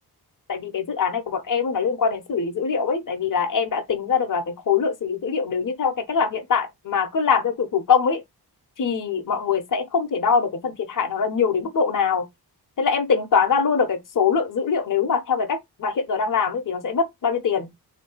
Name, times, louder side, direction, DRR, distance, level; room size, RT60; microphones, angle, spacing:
voice 1, 0.5-8.2 8.8-12.2 12.8-17.7, left 6 dB, 50° left, 1.0 m, -23 dB
3.7 x 3.0 x 4.6 m
wide cardioid pair, 165°, 41 cm